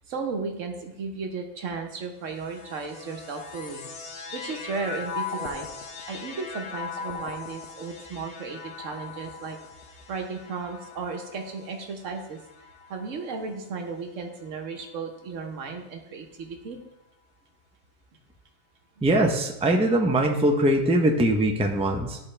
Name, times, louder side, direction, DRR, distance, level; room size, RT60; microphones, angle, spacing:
voice 1, 0.1-3.8 4.3-5.7 6.1-9.6 9.9-12.4 12.9-16.8 19.0-19.1, right 4 dB, 90° right, 3 dB, 1.3 m, -35 dB
sound 1, 2.2-13.7 14.5-15.2, left 5 dB, 65° left, 1.1 m, -40 dB
voice 2, 19.0-22.2, right 1 dB, 5° right, 2 dB, 0.5 m, -22 dB
12.0 x 4.3 x 3.3 m, 0.91 s
omnidirectional pair, 1.3 m